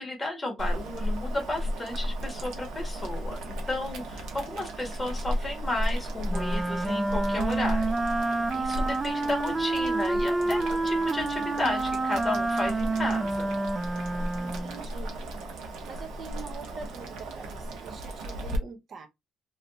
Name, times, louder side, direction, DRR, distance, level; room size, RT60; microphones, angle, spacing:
voice 1, 0.0-7.9 8.5-13.6, left 2 dB, 15° left, 1.6 m, -33 dB
Boiling, 0.6-18.6, equal, 85° right, 1.0 m, -35 dB
Wind instrument woodwind instrument, 6.3-14.8, right 2 dB, 15° right, 0.3 m, -28 dB
voice 2, 14.4-15.1 15.8-19.1, right 5 dB, 40° right, 0.8 m, -44 dB
3.3 x 2.9 x 2.7 m
cardioid pair, 150°, 0 cm